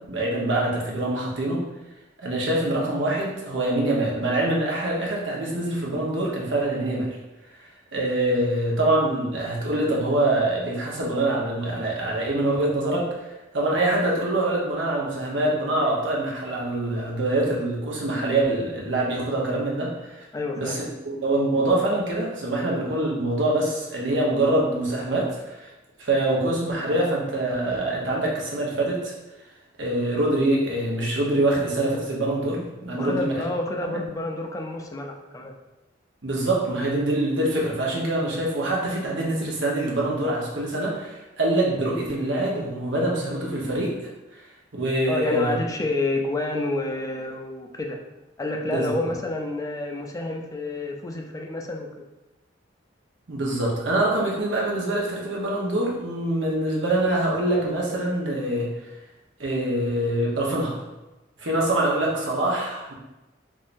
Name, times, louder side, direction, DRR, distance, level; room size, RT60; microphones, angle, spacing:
voice 1, 0.1-1.6 2.2-7.2 7.9-13.3 13.5-20.2 20.6-25.7 26.0-29.1 29.8-33.4 33.9-34.0 36.2-44.4 44.7-45.6 48.6-48.9 53.3-58.9 59.4-60.8 61.4-62.9, right 1 dB, 90° right, -3 dB, 0.9 m, -25 dB
voice 2, 20.3-20.8 33.0-35.5 45.1-48.0 48.4-52.0, left 2 dB, 20° left, 2 dB, 0.3 m, -29 dB
3.6 x 3.2 x 2.6 m, 1.0 s
head